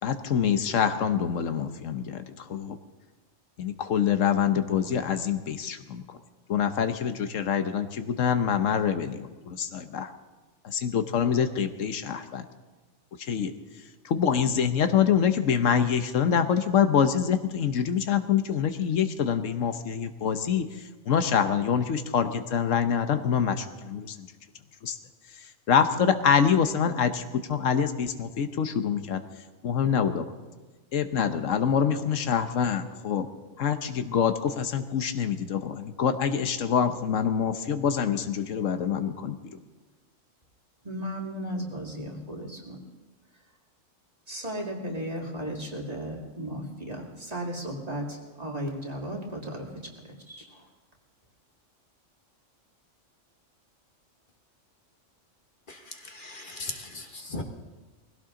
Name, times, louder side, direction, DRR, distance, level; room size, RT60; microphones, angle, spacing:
voice 1, 0.0-2.2 2.5-2.8 3.6-6.0 6.5-10.1 10.6-12.5 13.3-13.5 14.0-20.7 21.1-24.3 24.8-25.0 25.7-29.2 29.6-30.2 30.9-33.3 33.6-39.4, left 7 dB, 85° left, 9 dB, 1.3 m, -25 dB
voice 2, 40.8-42.8 43.3-43.4 44.3-50.7, equal, 30° right, 0 dB, 2.3 m, -35 dB
voice 3, 55.9-57.4, left 2 dB, 40° left, 4 dB, 1.4 m, -38 dB
21.0 x 16.0 x 3.8 m, 1.3 s
omnidirectional pair, 1.3 m